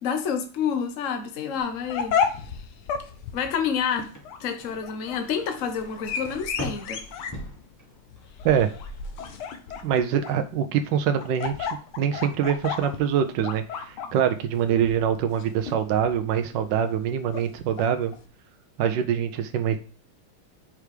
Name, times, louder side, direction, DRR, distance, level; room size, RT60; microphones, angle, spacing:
voice 1, 0.0-2.7 3.3-4.1 4.4-7.0, left 7 dB, 50° left, 1.1 m, -29 dB
sound 1, 1.6-18.2, left 6 dB, 90° left, 1.8 m, -33 dB
sound 2, 4.1-8.3 8.6-9.2, equal, 10° left, 1.2 m, -41 dB
voice 2, 9.8-11.7 12.0-18.1 18.8-19.8, right 8 dB, 70° right, 1.2 m, -24 dB
5.8 x 4.8 x 4.8 m
omnidirectional pair, 2.3 m